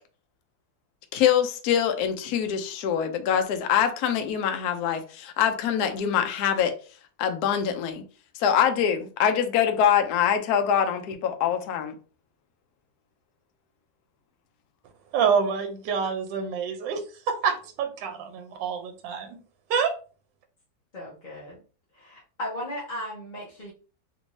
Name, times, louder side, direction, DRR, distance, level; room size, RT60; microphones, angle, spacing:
voice 1, 1.1-6.7 7.2-8.0 8.4-12.0, left 8 dB, 70° left, 1.0 m, -24 dB
voice 2, 15.1-19.4 19.7-20.0, right 6 dB, 75° right, 1.3 m, -27 dB
voice 3, 20.9-21.6 21.9-23.7, equal, 40° left, 0.7 m, -36 dB
3.3 x 2.7 x 3.1 m
omnidirectional pair, 2.0 m